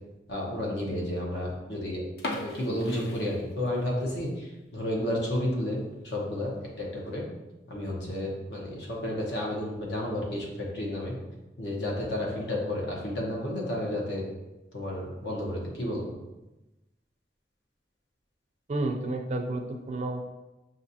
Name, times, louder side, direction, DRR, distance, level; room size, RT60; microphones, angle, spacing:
voice 1, 0.3-2.0 2.3-5.8 6.0-7.2 7.7-11.1 11.6-14.2 14.7-16.1, left 1 dB, 85° left, -3 dB, 1.0 m, -31 dB
sound 1, 2.1-4.0 4.3-4.4 5.0-5.2 5.6-5.7 5.9-6.0 6.8-7.1, left 2 dB, 60° left, 0.5 m, -38 dB
voice 2, 18.7-20.2, right 2 dB, 40° right, 5 dB, 0.3 m, -31 dB
5.9 x 2.5 x 2.7 m, 1.0 s
head